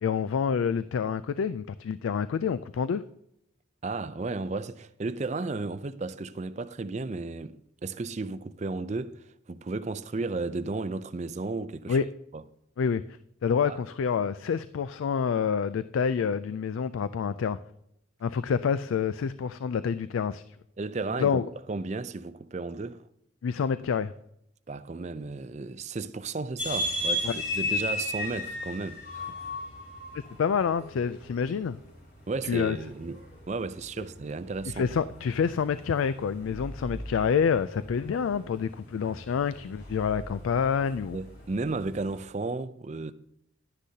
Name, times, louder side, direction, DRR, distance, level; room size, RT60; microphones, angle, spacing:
voice 1, 0.0-3.0 11.9-12.0 12.8-13.0 13.4-17.6 18.2-20.4 21.2-21.5 23.4-24.1 27.2-27.4 30.4-31.8 32.4-32.8 34.7-41.2, left 6 dB, 80° left, 0.3 m, -27 dB
voice 2, 3.8-7.5 7.8-9.2 9.5-12.0 12.3-12.4 13.6-13.8 20.8-21.4 21.7-23.0 24.7-29.4 32.3-33.2 33.5-34.8 41.1-43.1, right 3 dB, 35° right, 0.4 m, -34 dB
sound 1, 26.6-42.2, left 1 dB, 55° left, 4.3 m, -37 dB
11.5 x 9.9 x 2.8 m
head